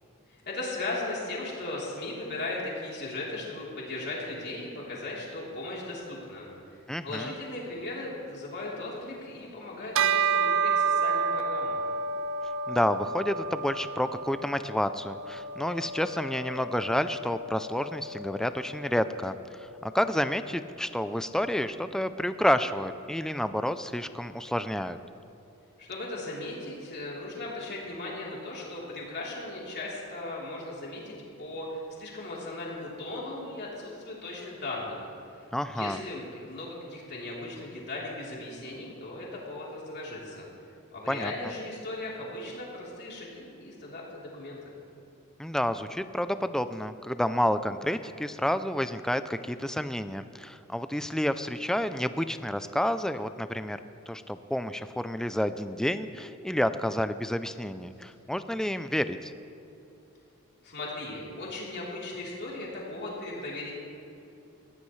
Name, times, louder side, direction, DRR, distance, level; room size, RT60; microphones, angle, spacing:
voice 1, 0.3-11.8 25.8-40.5 40.9-44.6 60.6-63.7, left 2 dB, 50° left, -5 dB, 3.5 m, -37 dB
voice 2, 6.9-7.3 12.7-25.0 35.5-36.0 41.1-41.3 45.4-53.8 54.1-59.3, equal, 5° left, 11 dB, 0.4 m, -29 dB
Bell, 9.9-19.6, right 5 dB, 60° right, 0.5 m, -31 dB
20.5 x 15.0 x 3.2 m, 2.7 s
head